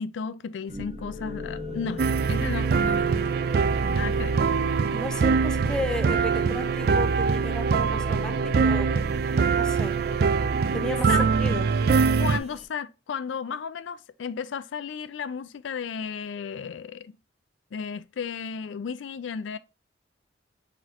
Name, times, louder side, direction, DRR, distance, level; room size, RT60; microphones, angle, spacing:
voice 1, 0.0-2.0 2.3-3.2 3.8-4.4 11.1-11.2 12.2-17.2 17.7-19.6, left 6 dB, 80° left, 0.4 m, -34 dB
sound 1, 0.7-12.6, equal, 35° right, 0.8 m, -38 dB
Friedrichshain (short version), 2.0-12.4, right 5 dB, 55° right, 0.3 m, -23 dB
voice 2, 4.9-8.9 9.4-10.0 10.7-11.6, left 1 dB, 5° left, 0.6 m, -34 dB
4.3 x 4.1 x 2.4 m
head